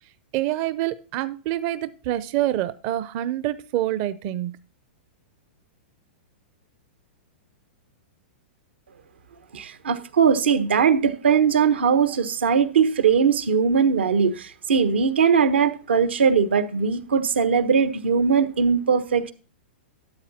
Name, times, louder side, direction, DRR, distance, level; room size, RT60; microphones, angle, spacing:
voice 1, 0.3-4.6, right 14 dB, 45° right, 0.6 m, -26 dB
voice 2, 9.5-19.3, right 6 dB, 85° right, 1.2 m, -20 dB
13.0 x 8.0 x 2.8 m
hypercardioid pair, 125°, 6 cm